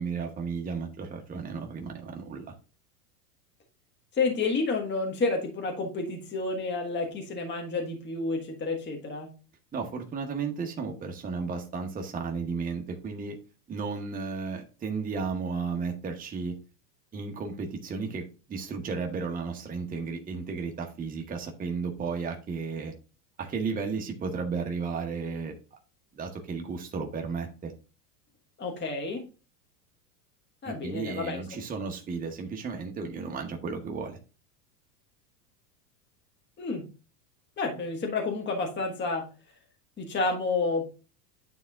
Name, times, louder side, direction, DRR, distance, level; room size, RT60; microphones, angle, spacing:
voice 1, 0.0-2.5 9.7-13.3 13.7-16.5 17.1-18.2 18.5-22.9 23.4-25.5 26.1-27.7 30.6-34.2, right 5 dB, 15° right, 2 dB, 1.0 m, -33 dB
voice 2, 4.1-9.3 28.6-29.2 30.6-31.4 36.6-36.8 37.6-39.2 40.0-40.9, left 3 dB, 20° left, 2 dB, 1.4 m, -30 dB
9.3 x 3.5 x 3.5 m, 0.33 s
supercardioid pair, 115°, 49 cm